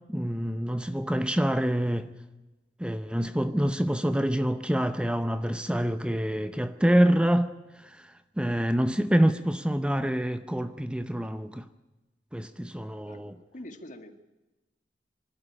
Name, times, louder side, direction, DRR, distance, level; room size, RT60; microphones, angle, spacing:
voice 1, 0.1-2.1 2.8-7.5 7.8-8.1 8.4-11.7 12.3-13.3, equal, 5° right, 0.7 m, -26 dB
voice 2, 13.1-14.1, left 1 dB, 45° left, 1.9 m, -45 dB
24.5 x 12.5 x 10.0 m
head